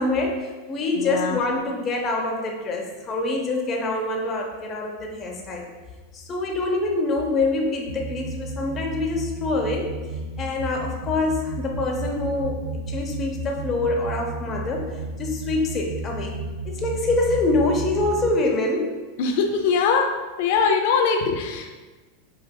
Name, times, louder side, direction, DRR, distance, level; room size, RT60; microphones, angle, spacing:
voice 1, 0.0-5.6 6.1-9.9 10.4-12.6 12.9-16.4 16.6-19.0, left 2 dB, 30° left, 0 dB, 0.7 m, -25 dB
voice 2, 1.0-1.4 19.2-20.1 20.4-21.7, left 5 dB, 65° left, 4 dB, 0.4 m, -21 dB
sound 1, 7.9-18.3, right 2 dB, 70° right, 0.3 m, -33 dB
4.8 x 2.5 x 2.2 m, 1.3 s
hypercardioid pair, 110°, 0 cm